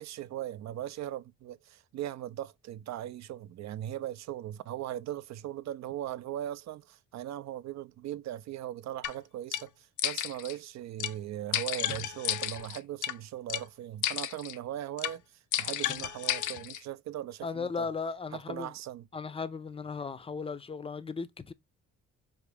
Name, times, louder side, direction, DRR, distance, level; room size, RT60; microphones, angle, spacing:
voice 1, 0.0-15.2 15.6-17.9 18.3-19.1, right 12 dB, 65° right, 0.5 m, -39 dB
sound 1, 9.0-9.1 9.5-9.6 10.0-10.5 11.0-11.1 11.5-13.1 13.5-13.6 14.0-14.6 15.0-15.1 15.5-16.8, left 12 dB, 80° left, 0.5 m, -32 dB
voice 2, 17.4-18.7 19.1-21.5, left 5 dB, 20° left, 0.5 m, -36 dB
4.9 x 2.5 x 3.3 m
cardioid pair, 90°, 30 cm